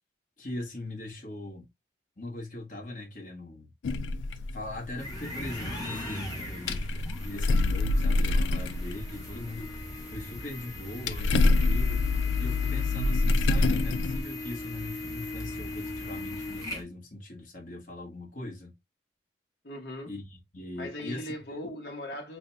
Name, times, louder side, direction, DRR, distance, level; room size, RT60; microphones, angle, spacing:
voice 1, 0.4-1.7 2.2-3.7 4.5-6.8 7.2-9.8 10.1-12.1 12.4-18.7 20.1-21.6, left 1 dB, 45° left, 1.3 m, -40 dB
sound 1, 3.8-5.4 5.8-5.9 6.5-10.4 10.7-14.2, left 2 dB, 90° left, 0.4 m, -26 dB
sound 2, 5.0-16.8, left 2 dB, 20° left, 1.1 m, -39 dB
voice 2, 19.6-20.1 20.8-22.4, left 1 dB, 65° left, 1.1 m, -39 dB
4.9 x 2.3 x 2.6 m
head